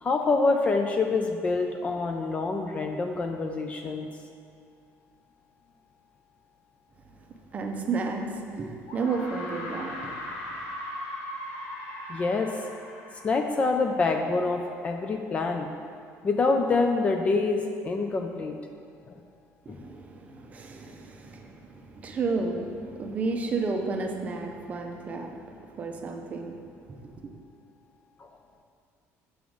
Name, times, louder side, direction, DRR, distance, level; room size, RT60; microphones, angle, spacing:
voice 1, 0.0-4.1 12.1-12.5 13.2-15.7 16.2-18.6 19.1-19.2 19.7-19.9 28.2-28.3, left 3 dB, 25° left, 4 dB, 0.3 m, -26 dB
voice 2, 7.5-10.2 19.7-26.6 26.9-27.3, right 4 dB, 25° right, 3 dB, 0.6 m, -32 dB
sound 1, 8.0-8.1 8.9-14.1, left 1 dB, 80° left, 1.3 m, -39 dB
7.0 x 3.7 x 6.2 m, 2.3 s
cardioid pair, 165°, 6 cm